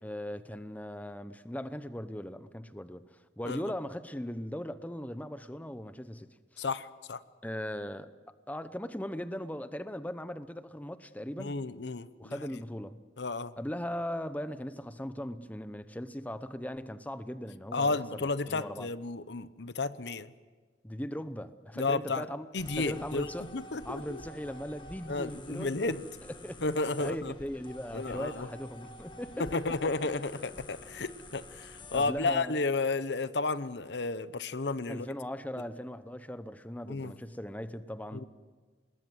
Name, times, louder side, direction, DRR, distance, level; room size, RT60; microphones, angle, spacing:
voice 1, 0.0-3.0 3.4-6.6 7.4-8.1 8.5-11.6 12.2-13.0 13.6-18.9 20.8-22.5 22.8-23.5 23.8-25.9 26.2-26.6 27.0-29.8 31.9-32.6 34.9-38.2, equal, 10° left, 0.8 m, -39 dB
voice 2, 6.6-7.2 11.4-12.3 13.2-13.5 17.7-20.3 21.8-22.2 22.5-23.3 23.5-24.2 25.1-26.0 26.6-27.3 27.9-28.5 29.4-35.1 36.9-37.1 38.1-38.2, left 3 dB, 80° left, 1.0 m, -32 dB
sound 1, 22.6-32.2, left 1 dB, 25° left, 1.7 m, -49 dB
26.5 x 20.5 x 7.8 m
head